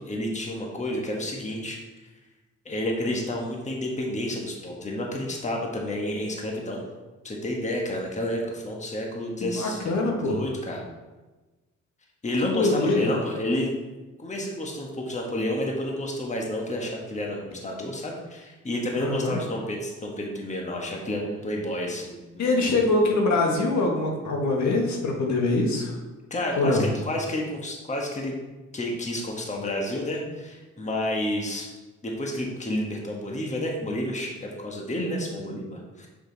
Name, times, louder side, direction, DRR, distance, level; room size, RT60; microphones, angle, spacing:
voice 1, 0.0-1.8 2.6-6.8 7.2-9.8 10.2-10.8 12.2-13.8 14.2-22.6 26.3-28.3 28.7-31.7 32.0-36.1, left 1 dB, 25° left, 0 dB, 1.3 m, -30 dB
voice 2, 9.4-10.4 12.4-13.1 19.0-19.4 22.4-26.0 26.6-26.8, left 2 dB, 65° left, 0 dB, 1.5 m, -24 dB
6.6 x 5.2 x 4.0 m, 1.2 s
cardioid pair, 90°, 30 cm